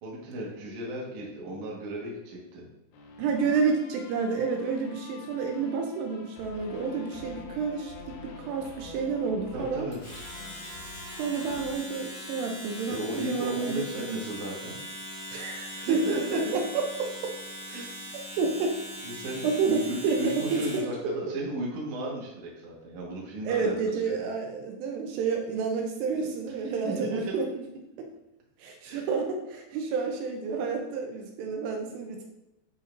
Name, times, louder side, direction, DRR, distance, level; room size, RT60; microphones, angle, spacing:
voice 1, 0.0-2.7 9.5-10.0 12.9-14.8 15.7-16.6 17.7-18.3 19.0-23.8 24.0-24.1 26.6-27.4 28.8-29.1, right 1 dB, 55° right, -3 dB, 2.3 m, -35 dB
sound 1, 2.9-11.7, left 3 dB, 75° left, 2.3 m, -47 dB
voice 2, 3.2-9.9 11.1-14.2 15.3-16.0 16.3-17.3 18.4-18.8 19.4-20.6 23.4-27.6 28.6-32.2, right 5 dB, 80° right, 2 dB, 2.8 m, -30 dB
Domestic sounds home sounds, 9.9-20.9, equal, 25° left, 2.3 m, -41 dB
10.5 x 4.3 x 2.5 m, 0.91 s
omnidirectional pair, 4.9 m